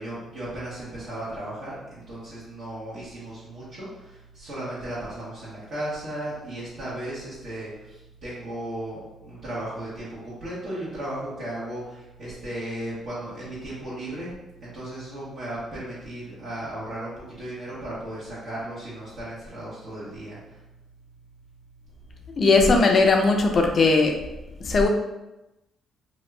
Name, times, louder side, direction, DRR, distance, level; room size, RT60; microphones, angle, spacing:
voice 1, 0.0-14.3 14.6-20.6, right 1 dB, 60° right, -10 dB, 1.2 m, -35 dB
voice 2, 22.4-24.2 24.6-24.9, left 3 dB, 50° left, 3 dB, 0.5 m, -18 dB
2.9 x 2.4 x 3.2 m, 0.98 s
cardioid pair, 90°, 0 cm